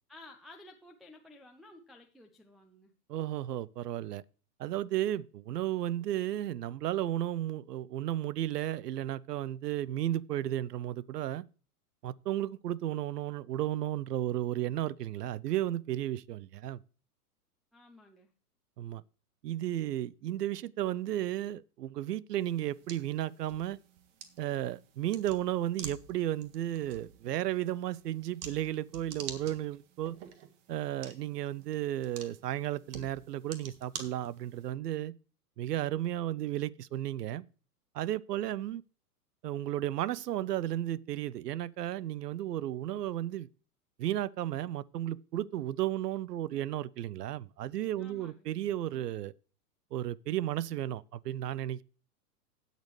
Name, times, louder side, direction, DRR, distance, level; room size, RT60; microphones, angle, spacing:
voice 1, 0.1-2.9 17.7-18.3 48.0-48.5, left 2 dB, ahead, 0.5 m, -54 dB
voice 2, 3.1-4.2 4.6-11.4 12.0-16.8 18.8-19.0 19.4-23.8 24.4-30.2 30.7-35.1 35.6-37.4 37.9-38.8 39.4-43.5 44.0-49.3 49.9-51.8, right 13 dB, 80° right, 0.7 m, -34 dB
sound 1, 22.4-34.7, right 7 dB, 50° right, 1.7 m, -48 dB
17.0 x 6.8 x 3.2 m
hypercardioid pair, 120°, 47 cm